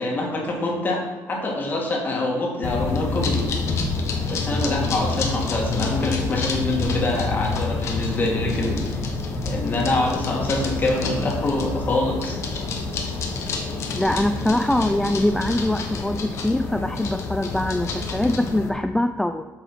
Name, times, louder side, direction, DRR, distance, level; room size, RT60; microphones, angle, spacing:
voice 1, 0.0-3.5 4.3-8.9 9.4-12.4, left 2 dB, 30° left, -1 dB, 2.2 m, -25 dB
sound 1, 2.6-18.7, left 3 dB, 50° left, 1.3 m, -27 dB
voice 2, 13.9-19.4, left 1 dB, 5° left, 8 dB, 0.3 m, -23 dB
8.5 x 5.4 x 5.9 m, 1.2 s
cardioid pair, 125°, 6 cm